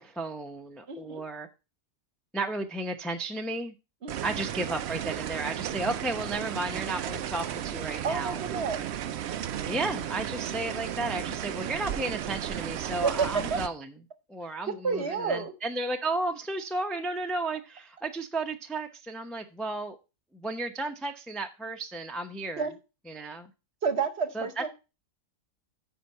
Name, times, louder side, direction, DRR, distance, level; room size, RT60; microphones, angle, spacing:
voice 1, 0.0-1.5 2.3-3.7 4.2-8.8 9.7-13.9 14.3-20.0 20.3-22.7 23.1-23.5 24.3-24.7, right 2 dB, ahead, 0.4 m, -33 dB
voice 2, 0.9-1.2 4.0-4.3 8.0-8.8 13.0-13.6 14.8-15.5 22.6-22.7 23.8-24.7, right 5 dB, 45° right, 1.0 m, -30 dB
sound 1, 4.1-13.7, right 10 dB, 85° right, 0.5 m, -34 dB
10.5 x 4.6 x 5.6 m
omnidirectional pair, 1.8 m